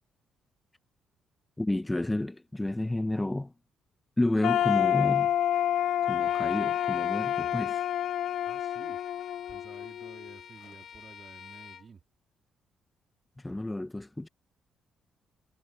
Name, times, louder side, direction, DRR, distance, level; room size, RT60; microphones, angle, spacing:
voice 1, 1.6-3.5 4.2-5.3 6.0-7.8 13.4-14.3, left 1 dB, 10° left, 0.7 m, -30 dB
sound 1, 4.4-10.3, left 11 dB, 75° left, 0.4 m, -28 dB
voice 2, 4.7-5.1 8.4-9.0 9.5-12.0, right 5 dB, 40° right, 3.3 m, -52 dB
Bowed string instrument, 6.2-11.9, left 8 dB, 60° left, 2.8 m, -49 dB
cardioid pair, 90°, 0 cm